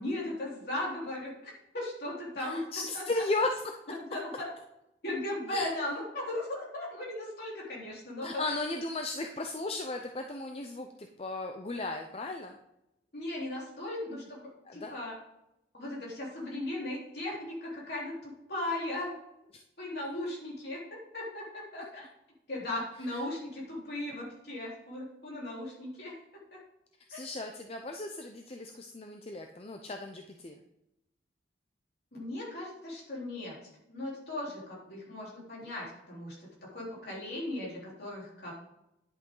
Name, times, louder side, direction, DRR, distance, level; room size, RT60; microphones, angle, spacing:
voice 1, 0.0-2.6 2.9-3.0 4.1-4.5 5.0-8.5 13.1-15.2 15.7-19.1 19.8-20.8 21.1-22.1 22.5-26.1 26.5-26.6 27.1-27.2 32.1-33.6 33.9-36.4 36.6-38.5, left 1 dB, 55° left, -5 dB, 3.8 m, -37 dB
voice 2, 2.4-3.7 5.5-5.7 8.2-12.6 14.7-14.9 23.1-23.2 27.1-30.6, left 2 dB, 30° left, 4 dB, 0.5 m, -35 dB
10.5 x 8.5 x 3.9 m, 0.87 s
head